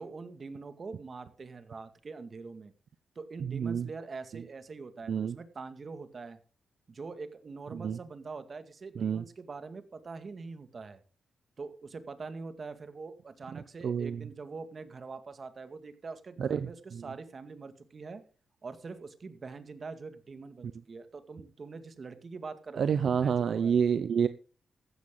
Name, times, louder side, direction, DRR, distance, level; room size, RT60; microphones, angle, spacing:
voice 1, 0.0-2.7 3.2-6.4 6.9-11.0 11.6-18.2 18.6-23.8, right 4 dB, 45° right, 10 dB, 2.1 m, -44 dB
voice 2, 3.4-3.9 5.1-5.3 7.7-8.0 9.0-9.2 13.8-14.2 16.4-17.0 22.8-24.3, right 7 dB, 70° right, 13 dB, 0.7 m, -28 dB
15.5 x 12.0 x 3.9 m, 0.36 s
cardioid pair, 90°, 0 cm